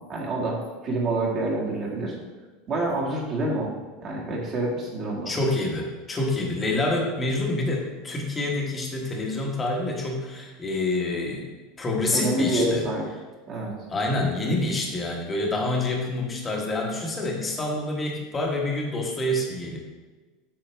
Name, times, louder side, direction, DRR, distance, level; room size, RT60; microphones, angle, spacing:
voice 1, 0.1-2.2 2.7-3.7 4.0-5.3 12.1-13.0 13.5-13.7, right 2 dB, 30° right, -3 dB, 1.9 m, -27 dB
voice 2, 5.3-11.5 11.8-12.8 13.9-19.8, left 2 dB, 15° left, 0 dB, 1.3 m, -27 dB
8.5 x 6.5 x 3.4 m, 1.3 s
supercardioid pair, 165°, 0 cm